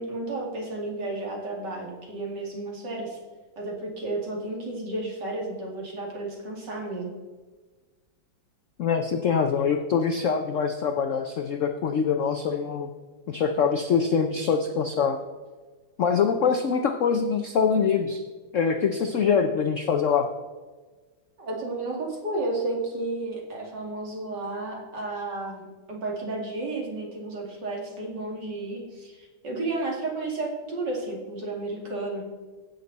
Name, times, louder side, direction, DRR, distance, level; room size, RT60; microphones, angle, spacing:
voice 1, 0.0-3.2 3.6-7.1 21.4-32.2, right 2 dB, 60° right, -1 dB, 3.0 m, -32 dB
voice 2, 8.8-12.9 13.3-15.2 16.0-18.2 18.5-20.3, left 6 dB, 65° left, 6 dB, 0.7 m, -24 dB
16.0 x 6.7 x 4.0 m, 1.4 s
omnidirectional pair, 2.1 m